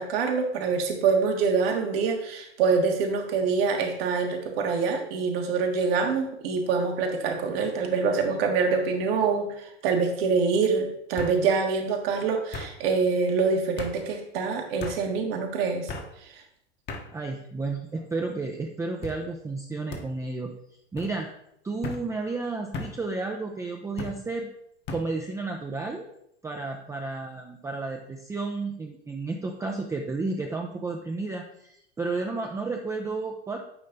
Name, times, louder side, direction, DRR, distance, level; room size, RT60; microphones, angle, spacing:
voice 1, 0.0-15.9 16.2-16.4, right 5 dB, 60° right, 3 dB, 1.5 m, -25 dB
sound 1, 7.7-8.1 8.5-9.0 10.1-10.2 11.2-11.4 12.5-12.7 13.8-14.0 14.8-15.0 15.9-16.1 16.9-17.1 17.8-18.2 19.0-19.2 19.9-20.1 21.0-21.1 21.8-22.0 22.7-23.0 24.0-24.2 24.9-25.1, left 3 dB, 30° left, 1.1 m, -37 dB
voice 2, 17.1-20.5 20.9-21.3 21.6-24.5 24.9-26.1 26.4-33.6, right 3 dB, 10° right, 1 dB, 0.5 m, -32 dB
8.8 x 3.2 x 3.9 m, 0.74 s
hypercardioid pair, 90°, 34 cm